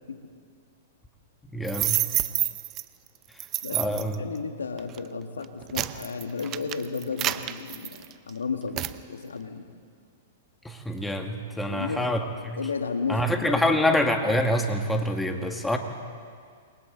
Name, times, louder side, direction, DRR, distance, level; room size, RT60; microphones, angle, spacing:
voice 1, 1.5-2.0 3.7-4.2 10.6-12.2 12.5-12.6 13.1-15.8, left 1 dB, 5° left, 3 dB, 2.1 m, -26 dB
sound 1, 1.6-2.8 3.4-4.1 4.8-5.0 5.4-8.3 8.8-9.0, right 14 dB, 35° right, 0.7 m, -28 dB
voice 2, 3.6-9.7 11.7-12.1 12.6-13.6, left 5 dB, 80° left, 6 dB, 1.9 m, -33 dB
28.5 x 23.0 x 4.1 m, 2.1 s
hypercardioid pair, 110°, 0 cm